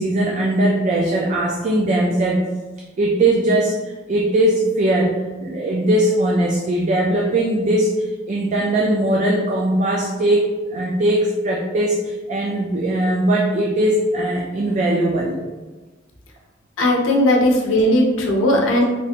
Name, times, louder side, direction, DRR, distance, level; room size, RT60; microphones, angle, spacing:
voice 1, 0.0-2.4 3.0-3.8 4.1-5.1 5.4-15.4, right 1 dB, 40° right, -1 dB, 0.3 m, -19 dB
voice 2, 16.8-18.9, left 1 dB, 90° left, 0 dB, 0.6 m, -17 dB
3.1 x 2.5 x 2.8 m, 1.2 s
head